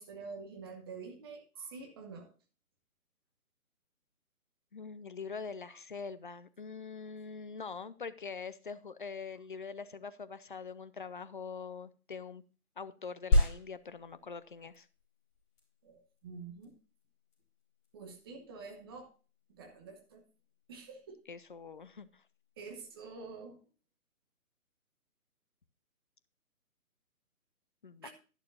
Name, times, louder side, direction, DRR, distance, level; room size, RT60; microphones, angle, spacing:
voice 1, 0.0-2.3 15.8-16.7 17.9-19.1 19.6-20.2 20.7-21.2 22.6-23.7 28.0-28.1, right 4 dB, 15° right, 3 dB, 1.0 m, -47 dB
voice 2, 4.7-12.4 12.8-14.9 21.3-22.2 27.8-28.1, left 5 dB, 35° left, 15 dB, 0.6 m, -44 dB
sound 1, 13.3-23.3, left 1 dB, 15° left, 4.2 m, -36 dB
11.0 x 11.0 x 2.6 m, 0.35 s
figure-of-eight pair, 140°, 44 cm